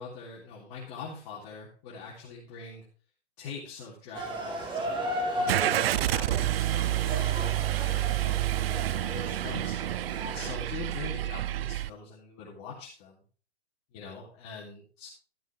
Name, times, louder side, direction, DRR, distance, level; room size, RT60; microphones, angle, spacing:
voice 1, 0.0-2.8 3.4-5.0 5.4-9.8 10.2-13.2 13.9-15.1, left 4 dB, 35° left, -5 dB, 3.4 m, -43 dB
sound 1, 4.1-10.5, equal, 15° right, 2.1 m, -35 dB
Car / Engine starting, 5.5-11.9, right 14 dB, 60° right, 0.5 m, -29 dB
13.5 x 6.4 x 4.9 m, 0.40 s
hypercardioid pair, 135°, 34 cm